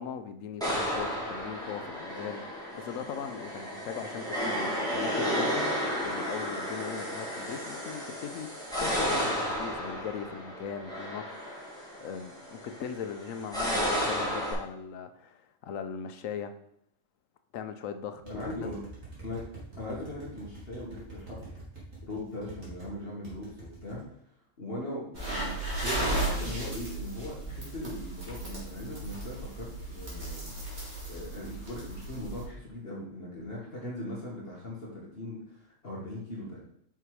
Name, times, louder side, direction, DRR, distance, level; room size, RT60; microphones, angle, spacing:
voice 1, 0.0-11.2 11.5-16.5 17.5-18.7, left 7 dB, 85° left, 9 dB, 1.1 m, -39 dB
sound 1, 0.6-14.5, equal, 5° left, 2.3 m, -33 dB
voice 2, 18.2-18.9 19.2-21.5 22.0-24.0 24.6-30.5 31.1-36.6, left 1 dB, 50° left, -4 dB, 1.8 m, -39 dB
sound 2, 18.2-22.9 23.2-24.0, right 2 dB, 80° right, 2.6 m, -46 dB
sound 3, 25.1-32.4, right 1 dB, 55° right, 2.8 m, -35 dB
5.8 x 5.7 x 4.8 m, 0.72 s
omnidirectional pair, 1.3 m